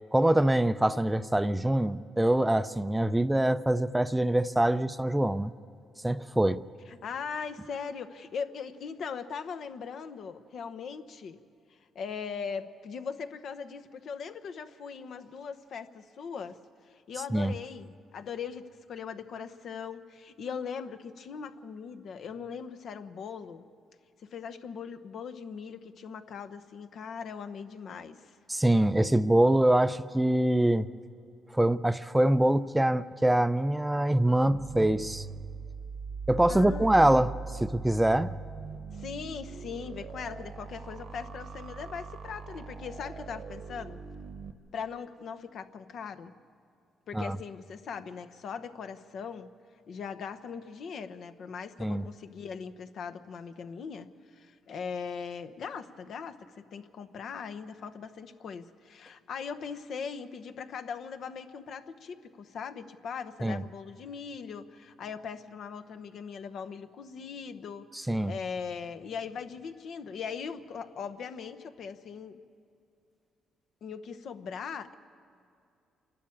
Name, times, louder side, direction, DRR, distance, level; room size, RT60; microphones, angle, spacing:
voice 1, 0.1-5.5 6.0-6.6 17.3-17.5 28.5-30.9 31.5-35.2 36.3-37.4 37.6-38.3 47.1-47.4 51.8-52.0 63.4-63.6 68.1-68.3, right 1 dB, 10° right, 0.5 m, -24 dB
voice 2, 6.9-11.4 11.9-16.6 16.9-23.7 24.3-28.3 36.5-37.1 38.9-44.0 44.7-46.4 47.1-49.5 49.9-67.9 68.3-72.4 73.8-75.0, left 6 dB, 65° left, 0.9 m, -40 dB
sound 1, 34.5-44.5, right 5 dB, 60° right, 1.1 m, -40 dB
27.5 x 12.0 x 8.7 m
cardioid pair, 90°, 0 cm